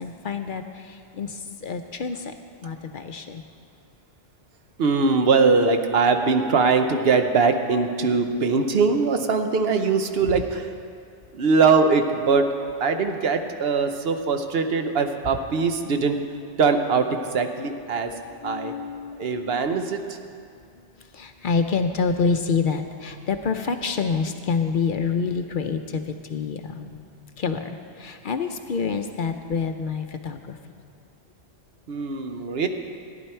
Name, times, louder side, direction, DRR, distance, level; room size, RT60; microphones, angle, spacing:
voice 1, 0.0-2.4 2.6-3.4 18.4-19.6 21.0-27.0 27.4-30.6, left 5 dB, 60° left, 7 dB, 0.7 m, -27 dB
voice 2, 4.8-10.7 11.3-12.5 12.8-16.2 16.6-18.1 18.4-18.7 19.2-20.2 31.9-32.7, right 4 dB, 65° right, 6 dB, 1.0 m, -21 dB
14.5 x 10.5 x 4.4 m, 2.4 s
omnidirectional pair, 1.1 m